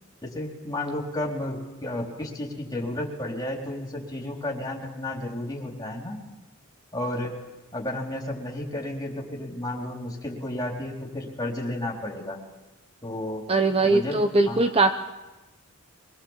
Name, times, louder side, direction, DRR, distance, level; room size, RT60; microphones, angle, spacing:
voice 1, 0.2-6.2 6.9-7.3 7.7-12.4 13.0-13.4 13.8-14.6, left 1 dB, 15° left, -2 dB, 4.1 m, -32 dB
voice 2, 13.5-14.9, right 3 dB, 25° right, 7 dB, 0.8 m, -21 dB
23.5 x 20.0 x 7.6 m, 1.1 s
head